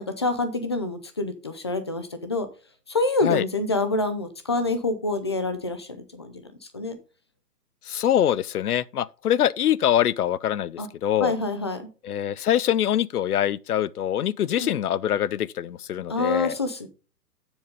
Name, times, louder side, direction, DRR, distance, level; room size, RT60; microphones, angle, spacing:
voice 1, 0.0-2.5 2.9-6.3 6.7-7.0 10.8-10.9 11.2-11.9 14.6-14.7 16.1-16.9, left 2 dB, 20° left, 0.4 m, -27 dB
voice 2, 7.9-11.4 12.0-16.6, left 10 dB, 70° left, 0.6 m, -24 dB
7.1 x 4.9 x 5.2 m
figure-of-eight pair, 130°, 47 cm